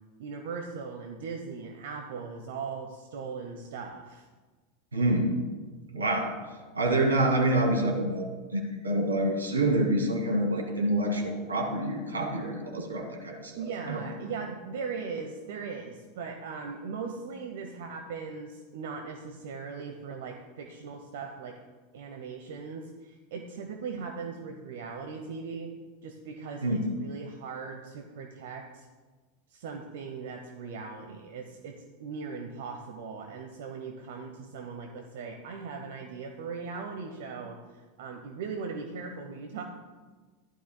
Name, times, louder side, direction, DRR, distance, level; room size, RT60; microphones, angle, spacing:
voice 1, 0.2-4.3 13.6-21.6 21.9-25.7 26.0-28.9 29.5-39.6, right 5 dB, 60° right, 4 dB, 0.9 m, -39 dB
voice 2, 4.9-5.3 5.9-6.3 6.7-14.0 26.6-26.8, right 1 dB, 80° right, 2 dB, 2.2 m, -27 dB
15.5 x 11.0 x 2.3 m, 1.3 s
figure-of-eight pair, 85°, 0 cm